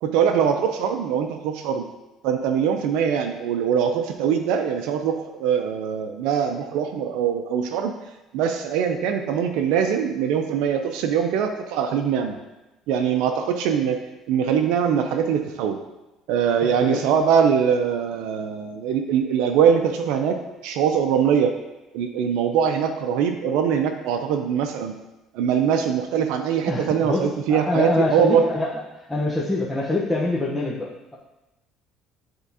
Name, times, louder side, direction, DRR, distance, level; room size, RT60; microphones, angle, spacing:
voice 1, 0.0-1.8 2.2-7.9 8.3-12.4 12.9-15.8 16.3-21.5 21.9-25.0 25.3-28.4, right 7 dB, 80° right, 5 dB, 0.5 m, -22 dB
voice 2, 16.6-17.1 26.7-27.2 27.5-28.7 29.1-31.2, left 2 dB, 10° left, -6 dB, 0.9 m, -25 dB
10.0 x 3.6 x 2.8 m, 1.0 s
cardioid pair, 105°, 0 cm